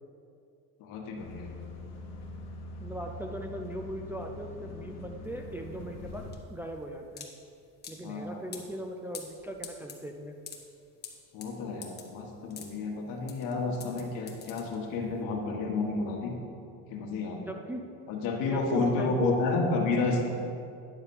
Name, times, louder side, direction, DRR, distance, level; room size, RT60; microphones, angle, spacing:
voice 1, 0.8-1.5 8.0-8.4 11.3-16.3 16.9-17.5 18.1-20.4, left 3 dB, 70° left, 1 dB, 1.5 m, -30 dB
sound 1, 1.2-6.3, left 2 dB, 50° left, 1.2 m, -43 dB
voice 2, 2.8-6.2 6.5-7.3 7.9-10.3 17.4-17.8 18.5-19.4, right 1 dB, 5° right, 2 dB, 0.4 m, -38 dB
sound 2, 5.2-15.2, left 6 dB, 30° left, 1.1 m, -47 dB
9.8 x 4.0 x 7.0 m, 2.5 s
cardioid pair, 130°, 33 cm